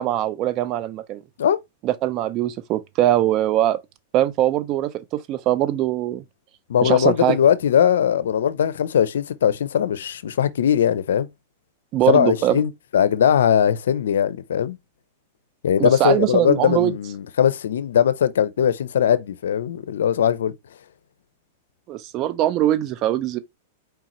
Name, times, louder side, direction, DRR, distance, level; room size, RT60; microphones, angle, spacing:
voice 1, 0.0-1.2 1.8-3.8 4.1-6.2 6.8-7.4 11.9-12.6 15.8-16.9 21.9-23.4, right 13 dB, 40° right, 0.5 m, -21 dB
voice 2, 6.7-11.3 12.1-14.8 15.6-20.5, left 9 dB, 85° left, 0.5 m, -20 dB
4.6 x 3.7 x 3.0 m
hypercardioid pair, 135°, 0 cm